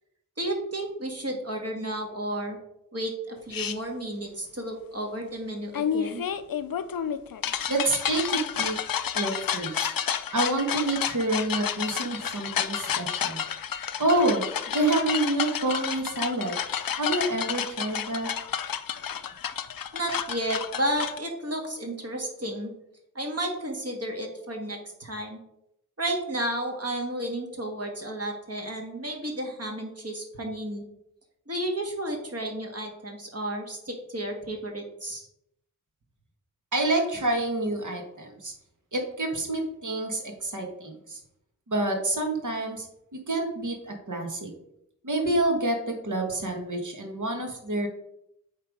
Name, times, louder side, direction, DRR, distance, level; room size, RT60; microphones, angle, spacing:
voice 1, 0.4-2.6 2.9-6.2 19.9-22.7 23.1-25.4 26.0-30.8 31.5-35.3, right 1 dB, 45° right, 2 dB, 1.7 m, -32 dB
sound 1, 3.5-3.8 5.7-21.2, left 8 dB, 85° left, 0.5 m, -30 dB
voice 2, 7.7-8.7 9.1-9.9 10.3-13.4 14.0-14.4 14.7-16.5 17.0-18.3 36.7-38.5 38.9-41.2 41.7-42.9 43.1-44.5 45.0-47.9, right 2 dB, 60° right, 2 dB, 1.6 m, -28 dB
8.6 x 3.4 x 5.3 m, 0.80 s
wide cardioid pair, 85°, 33 cm